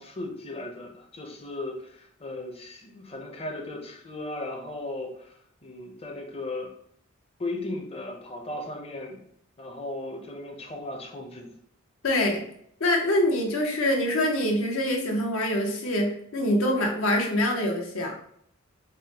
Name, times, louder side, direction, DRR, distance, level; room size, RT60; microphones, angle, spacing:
voice 1, 0.0-6.7 7.4-9.2 9.6-11.5, left 2 dB, 30° left, 1 dB, 0.6 m, -36 dB
voice 2, 12.0-12.4 12.8-18.1, left 1 dB, 75° left, 1 dB, 0.8 m, -25 dB
4.8 x 2.1 x 2.8 m, 0.68 s
head